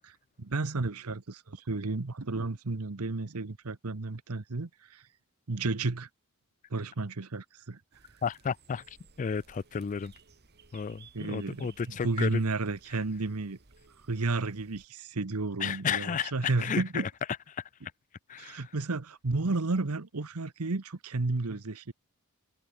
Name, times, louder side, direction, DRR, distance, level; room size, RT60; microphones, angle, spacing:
voice 1, 0.0-5.1 5.5-6.1 6.7-7.8 11.1-11.7 12.0-13.6 14.1-17.1 18.4-21.9, right 3 dB, 80° right, 1.1 m, -32 dB
sound 1, 7.9-14.9, right 5 dB, 50° right, 1.8 m, -59 dB
voice 2, 8.2-10.1 10.7-12.4 15.6-17.1 17.5-17.7 18.3-18.7, left 6 dB, 35° left, 0.3 m, -33 dB
head